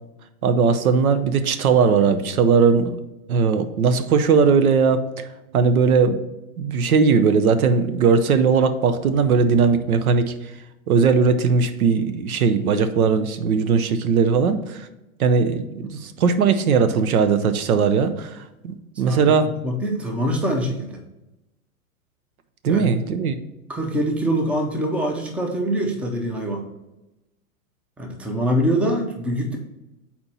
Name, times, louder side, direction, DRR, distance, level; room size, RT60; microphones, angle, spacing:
voice 1, 0.4-3.0 3.3-5.0 5.5-6.2 6.6-10.3 10.9-14.9 15.2-19.5 22.6-23.4, right 5 dB, 85° right, 10 dB, 0.7 m, -19 dB
voice 2, 19.6-21.0 22.7-22.9 23.7-26.7 28.0-29.6, equal, 5° right, 3 dB, 0.4 m, -24 dB
4.3 x 4.3 x 5.3 m, 0.96 s
hypercardioid pair, 120°, 42 cm